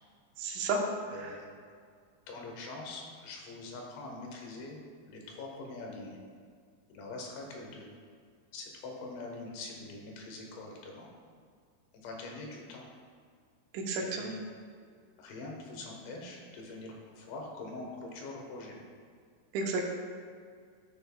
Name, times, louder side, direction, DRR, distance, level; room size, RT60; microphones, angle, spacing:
voice 1, 0.4-0.8 1.2-1.3 13.7-14.3 19.5-19.9, right 3 dB, 85° right, 0 dB, 3.5 m, -32 dB
voice 2, 1.1-1.5 2.3-6.2 6.9-7.9 8.5-11.1 11.9-12.8 14.1-14.4 15.2-18.8, left 2 dB, 75° left, 0 dB, 3.6 m, -44 dB
14.0 x 7.9 x 2.3 m, 2.1 s
omnidirectional pair, 5.5 m